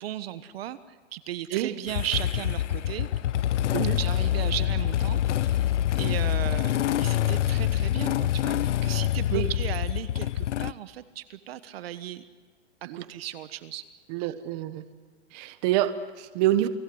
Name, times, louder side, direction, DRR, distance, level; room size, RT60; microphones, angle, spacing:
voice 1, 0.0-3.1 4.0-5.7 6.0-6.7 7.0-12.2 12.8-13.8 14.2-14.3, right 12 dB, 55° right, 13 dB, 1.3 m, -36 dB
Motorcycle / Engine starting, 1.9-10.7, left 12 dB, 85° left, 0.7 m, -26 dB
voice 2, 14.1-14.8 15.3-16.7, right 13 dB, 35° right, 11 dB, 1.3 m, -26 dB
29.5 x 20.0 x 7.9 m, 1.4 s
hypercardioid pair, 155°, 35 cm